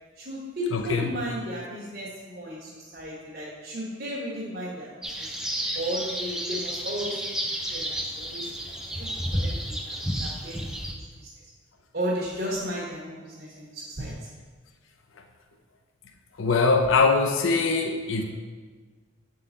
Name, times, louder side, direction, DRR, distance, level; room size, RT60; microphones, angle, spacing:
voice 1, 0.2-4.9 5.2-5.3 5.7-7.3 7.7-8.5 8.9-10.6 10.9-11.0 11.9-14.2, equal, 55° right, -7 dB, 1.3 m, -34 dB
voice 2, 0.7-1.1 16.4-18.2, left 4 dB, 75° left, 3 dB, 0.6 m, -22 dB
sound 1, 5.0-10.9, equal, 5° right, 0.5 m, -31 dB
7.7 x 3.8 x 4.0 m, 1.4 s
head